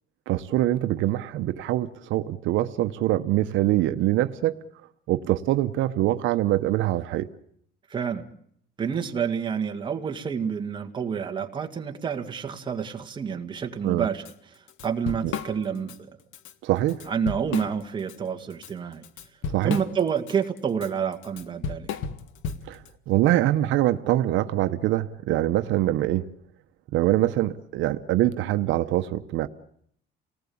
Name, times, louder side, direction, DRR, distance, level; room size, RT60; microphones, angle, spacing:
voice 1, 0.3-4.5 5.1-7.3 13.8-14.1 15.2-15.4 16.6-17.0 19.5-19.8 22.7-26.2 26.9-29.5, right 14 dB, 70° right, 9 dB, 1.0 m, -24 dB
voice 2, 7.9-8.3 8.8-14.2 14.8-16.0 17.1-19.0 19.6-21.9, right 7 dB, 25° right, 4 dB, 1.9 m, -28 dB
Drum kit / Drum, 14.3-14.4 14.7-16.0 16.3-16.5 16.9-18.2 18.5-22.9, left 6 dB, 75° left, 1.8 m, -34 dB
29.0 x 19.0 x 8.6 m, 0.70 s
cardioid pair, 165°, 20 cm